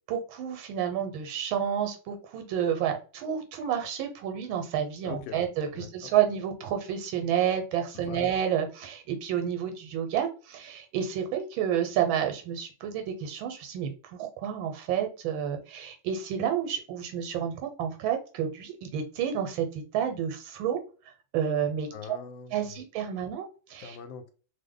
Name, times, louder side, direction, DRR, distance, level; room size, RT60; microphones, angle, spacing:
voice 1, 0.1-20.8 21.3-21.9 22.5-24.0, right 9 dB, 85° right, 6 dB, 1.5 m, -30 dB
voice 2, 5.0-5.4 5.7-6.1 7.9-8.3 21.9-22.7 23.8-24.3, left 7 dB, 80° left, 9 dB, 1.3 m, -42 dB
3.2 x 2.1 x 3.7 m, 0.36 s
omnidirectional pair, 2.1 m